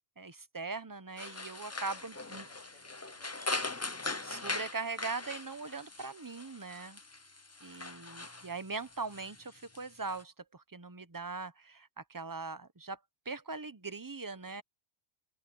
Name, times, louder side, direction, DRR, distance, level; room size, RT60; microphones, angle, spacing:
voice 1, 0.2-2.4 4.3-7.0 7.6-13.0 13.2-14.6, right 4 dB, 20° right, 0.8 m, -41 dB
sound 1, 1.2-10.2, left 2 dB, 20° left, 0.6 m, -41 dB
voice 2, 1.7-2.0 2.3-4.3, left 2 dB, 85° left, 7.9 m, -64 dB
open air
omnidirectional pair, 1.1 m